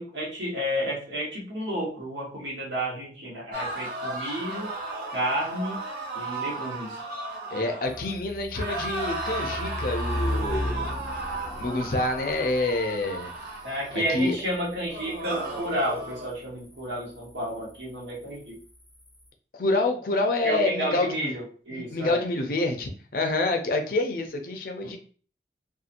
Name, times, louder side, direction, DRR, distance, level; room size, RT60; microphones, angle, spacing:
voice 1, 0.0-4.7 5.1-5.8 6.1-7.0 13.6-18.6 20.4-22.2 24.8-24.9, equal, 90° right, -4 dB, 1.1 m, -31 dB
sound 1, 3.5-8.2 8.5-14.4 14.9-16.3, right 2 dB, 55° right, 0.7 m, -34 dB
voice 2, 7.5-11.0 11.6-13.3 13.9-14.4 19.6-21.3 21.7-25.0, left 2 dB, 55° left, 4 dB, 0.5 m, -27 dB
sound 2, 7.8-19.3, left 1 dB, ahead, 0.5 m, -37 dB
2.7 x 2.3 x 2.5 m, 0.41 s
head